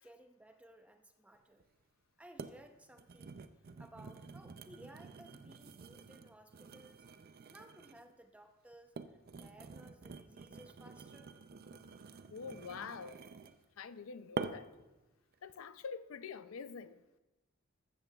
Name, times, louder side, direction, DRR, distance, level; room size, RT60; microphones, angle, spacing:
voice 1, 0.0-1.6 2.2-3.4 3.8-7.1 7.5-11.3, right 1 dB, 5° right, 0.7 m, -58 dB
sound 1, 1.6-1.7 2.4-2.6 2.9-8.1 8.7-13.6 14.4-14.8 15.3-15.6, right 4 dB, 45° right, 0.5 m, -47 dB
voice 2, 12.3-13.2 13.8-14.7 15.4-17.2, left 5 dB, 90° left, 0.5 m, -46 dB
14.5 x 13.0 x 2.3 m
head